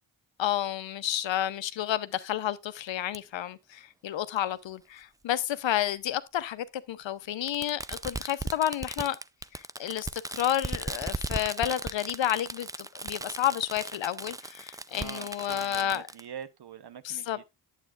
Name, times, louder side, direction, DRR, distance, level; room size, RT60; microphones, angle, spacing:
voice 1, 0.4-9.2 9.5-16.1 17.0-17.4, left 11 dB, 65° left, 0.8 m, -31 dB
Fireworks, 3.1-3.2 4.4-4.5 5.7-5.8 7.5-16.2, right 2 dB, 10° right, 0.4 m, -37 dB
voice 2, 15.0-17.5, right 8 dB, 55° right, 1.0 m, -44 dB
9.0 x 8.3 x 2.4 m
supercardioid pair, 45°, 48 cm